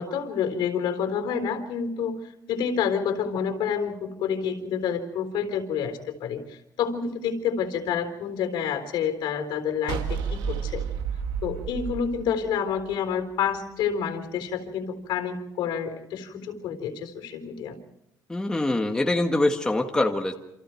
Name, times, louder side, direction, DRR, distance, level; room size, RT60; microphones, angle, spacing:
voice 1, 0.0-2.2 2.5-10.8 11.4-17.8, left 7 dB, 70° left, 7 dB, 3.8 m, -28 dB
sound 1, 9.9-13.1, right 7 dB, 90° right, 2.3 m, -31 dB
voice 2, 18.3-20.3, left 2 dB, 10° left, 3 dB, 1.6 m, -24 dB
28.0 x 27.5 x 4.6 m, 0.85 s
cardioid pair, 150°, 8 cm